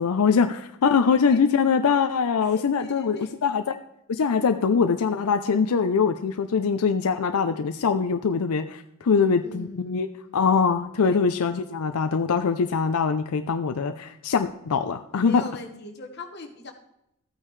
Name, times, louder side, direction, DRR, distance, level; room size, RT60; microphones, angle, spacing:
voice 1, 0.0-3.8 4.1-10.1 10.3-15.4, left 5 dB, 85° left, 7 dB, 0.5 m, -23 dB
voice 2, 0.9-1.6 2.4-3.5 9.0-10.5 11.0-11.2 15.1-16.7, left 2 dB, 50° left, 3 dB, 1.4 m, -41 dB
14.0 x 8.8 x 3.2 m, 0.81 s
head